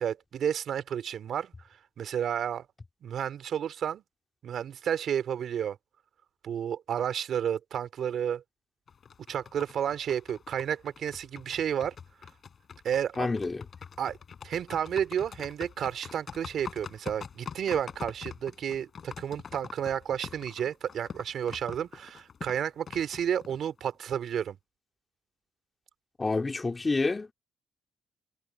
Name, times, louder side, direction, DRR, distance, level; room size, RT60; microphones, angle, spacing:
voice 1, 0.0-1.5 2.0-2.7 3.0-4.0 4.4-5.8 6.4-8.4 9.3-11.9 12.8-13.3 14.0-14.2 14.4-24.6, right 9 dB, 65° right, 2.8 m, -31 dB
sound 1, 8.9-23.8, left 6 dB, 55° left, 6.8 m, -45 dB
voice 2, 13.2-13.6 26.2-27.3, left 3 dB, 30° left, 2.3 m, -28 dB
supercardioid pair, 55°, 0 cm